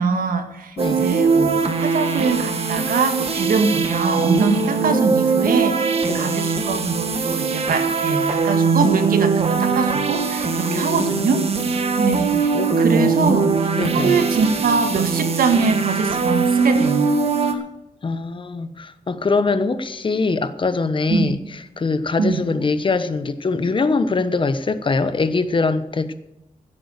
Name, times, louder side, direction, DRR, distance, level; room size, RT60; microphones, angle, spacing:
voice 1, 0.0-11.5 12.0-12.5 12.8-13.5 13.9-17.1 21.1-21.3 22.2-22.4, right 5 dB, 90° right, 7 dB, 2.0 m, -23 dB
voice 2, 0.8-1.1 6.1-6.4 10.7-11.5 12.3-14.2 17.4-17.6 18.0-26.1, left 3 dB, 35° left, 12 dB, 1.0 m, -23 dB
sound 1, 0.8-17.5, right 4 dB, 45° right, 1.7 m, -21 dB
16.0 x 8.6 x 6.6 m, 0.92 s
wide cardioid pair, 135°, 14 cm